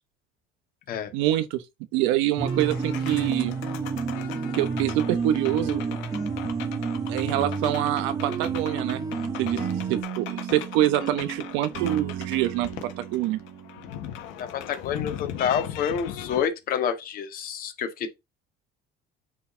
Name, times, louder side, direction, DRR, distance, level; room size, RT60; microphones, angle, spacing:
voice 1, 1.1-1.6 1.9-3.6 4.5-5.9 7.0-9.0 9.4-9.6 9.9-12.7 13.0-13.4, right 14 dB, 85° right, 1.1 m, -25 dB
sound 1, 2.4-16.5, left 11 dB, 80° left, 1.6 m, -39 dB
sound 2, 2.4-10.0, right 5 dB, 20° right, 0.9 m, -30 dB
sound 3, 9.6-14.7, right 10 dB, 55° right, 1.4 m, -36 dB
voice 2, 14.4-18.1, left 8 dB, 50° left, 2.0 m, -28 dB
9.2 x 4.1 x 3.9 m
cardioid pair, 145°, 19 cm